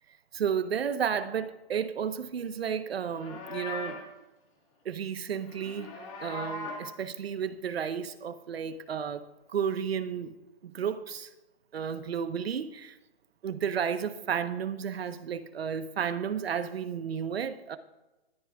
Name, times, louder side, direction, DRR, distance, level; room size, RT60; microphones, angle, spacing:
voice 1, 0.3-4.0 4.8-10.3 10.6-11.3 11.7-13.0 13.4-17.8, right 7 dB, 80° right, 1.1 m, -32 dB
Livestock farm animals working animals, 3.0-4.1 5.4-6.9, left 3 dB, 35° left, 2.0 m, -39 dB
20.5 x 13.0 x 2.4 m
hypercardioid pair, 160°, 30 cm